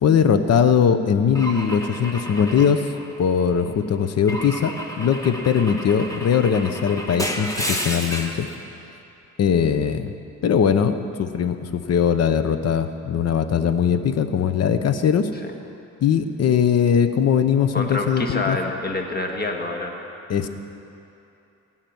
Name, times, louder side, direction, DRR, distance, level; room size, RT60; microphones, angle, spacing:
voice 1, 0.0-2.8 3.2-8.5 9.4-10.1 10.4-15.3 16.0-18.6 20.3-20.5, left 7 dB, 55° left, 10 dB, 0.9 m, -20 dB
Car / Engine / Glass, 1.4-3.6 4.3-8.5, equal, 10° left, 1.4 m, -31 dB
voice 2, 17.7-20.0, left 2 dB, 30° left, 2 dB, 1.7 m, -27 dB
16.5 x 5.8 x 9.3 m, 2.8 s
cardioid pair, 90°, 30 cm